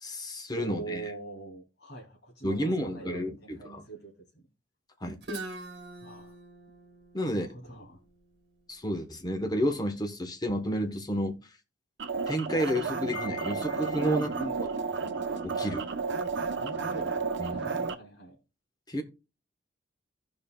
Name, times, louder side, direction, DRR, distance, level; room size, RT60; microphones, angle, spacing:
voice 1, 0.0-1.0 2.4-3.8 5.0-5.2 7.1-7.5 8.7-11.4 12.3-14.3 14.6-14.7 15.4-15.9 17.4-17.7 18.9-19.0, equal, 20° left, 1.0 m, -31 dB
voice 2, 0.5-4.4 6.0-6.3 7.2-8.0 14.0-14.7 16.5-17.2 17.5-18.3, right 3 dB, 60° left, 2.9 m, -42 dB
Guitar, 5.2-9.0, right 2 dB, 60° right, 1.4 m, -43 dB
sound 1, 12.0-17.9, right 4 dB, 75° right, 0.8 m, -32 dB
Wind chime, 13.1-14.5, left 9 dB, 85° left, 2.1 m, -45 dB
16.0 x 5.3 x 2.2 m
head